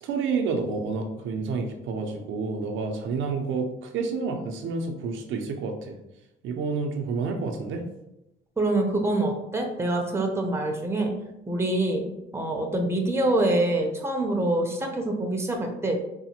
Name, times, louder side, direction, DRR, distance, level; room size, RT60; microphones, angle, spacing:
voice 1, 0.0-6.0 6.4-7.8, right 4 dB, 75° right, 4 dB, 0.5 m, -29 dB
voice 2, 8.6-11.1 11.5-12.0 12.3-16.0, right 2 dB, 15° right, 2 dB, 0.6 m, -25 dB
4.0 x 2.1 x 2.9 m, 0.88 s
cardioid pair, 90°, 20 cm